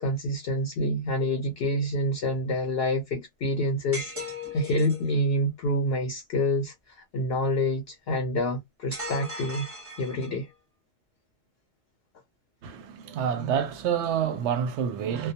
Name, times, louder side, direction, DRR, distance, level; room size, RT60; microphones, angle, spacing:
voice 1, 0.0-4.1 4.5-6.7 7.1-9.7 10.0-10.5, left 1 dB, 60° left, 0.8 m, -27 dB
sound 1, 3.9-5.1 8.9-10.5, left 2 dB, 15° right, 0.7 m, -37 dB
voice 2, 12.6-15.3, right 8 dB, 70° right, 0.8 m, -28 dB
2.3 x 2.2 x 2.7 m
omnidirectional pair, 1.3 m